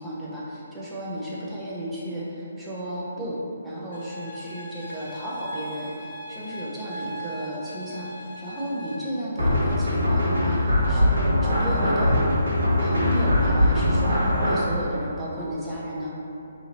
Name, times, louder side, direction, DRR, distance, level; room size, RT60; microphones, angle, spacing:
voice 1, 0.0-3.4 3.6-12.3 12.8-16.1, equal, 5° right, -9 dB, 0.6 m, -33 dB
sound 1, 3.9-9.0, right 1 dB, 65° left, 0.6 m, -39 dB
sound 2, 9.4-14.6, left 1 dB, 75° right, 1.4 m, -21 dB
2.8 x 2.6 x 4.1 m, 2.9 s
hypercardioid pair, 150°, 0 cm